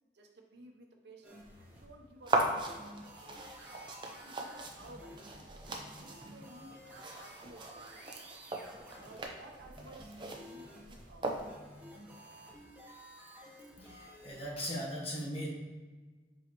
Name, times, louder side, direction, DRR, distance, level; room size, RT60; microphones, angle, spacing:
voice 1, 0.1-3.0 4.2-8.3 8.9-11.5, right 1 dB, 75° right, 2 dB, 0.9 m, -55 dB
sound 1, 1.2-14.4, equal, 10° right, 1.2 m, -53 dB
sound 2, 2.3-11.8, right 2 dB, 25° right, 0.6 m, -39 dB
voice 2, 13.8-15.5, equal, 35° left, -3 dB, 1.2 m, -39 dB
8.0 x 4.7 x 3.1 m, 1.3 s
head